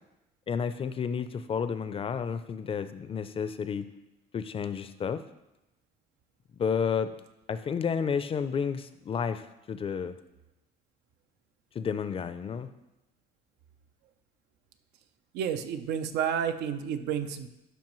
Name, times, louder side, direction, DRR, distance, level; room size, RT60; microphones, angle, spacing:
voice 1, 0.5-3.9 4.3-5.2 6.6-7.2 7.5-10.2 11.7-12.7, left 6 dB, 35° left, 12 dB, 0.5 m, -31 dB
voice 2, 15.3-17.5, right 8 dB, 85° right, 9 dB, 0.6 m, -30 dB
12.0 x 5.2 x 3.1 m, 0.94 s
cardioid pair, 110°, 17 cm